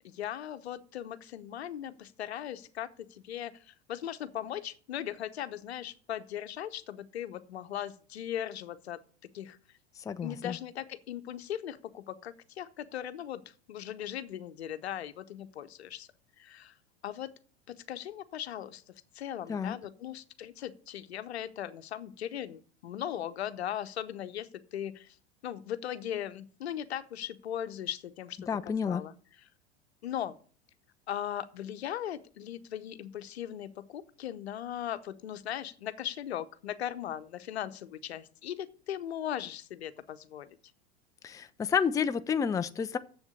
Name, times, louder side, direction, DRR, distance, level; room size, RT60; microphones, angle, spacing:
voice 1, 0.0-9.0 9.3-9.6 10.2-13.4 13.7-16.1 16.4-16.7 17.0-17.3 17.7-18.8 19.1-25.2 25.4-28.4 28.6-29.1 30.0-30.4 31.1-40.6, left 10 dB, 75° left, 12 dB, 0.9 m, -38 dB
voice 2, 10.1-10.6 19.5-19.7 28.5-29.0 41.2-43.0, left 7 dB, 10° left, 11 dB, 0.5 m, -30 dB
7.4 x 7.2 x 7.8 m, 0.43 s
hypercardioid pair, 90°, 32 cm